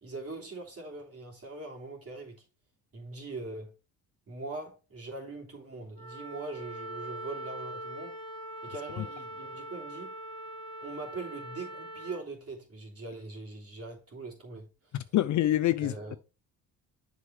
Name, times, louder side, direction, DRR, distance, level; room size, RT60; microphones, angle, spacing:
voice 1, 0.0-2.4 2.9-3.7 4.3-8.2 8.6-10.1 10.8-15.1 15.8-16.2, right 3 dB, 35° right, 3.1 m, -42 dB
Wind instrument woodwind instrument, 5.9-12.2, right 1 dB, 15° left, 1.4 m, -42 dB
voice 2, 14.9-16.1, left 13 dB, 50° left, 0.5 m, -26 dB
7.3 x 5.2 x 3.4 m
supercardioid pair, 60°, 38 cm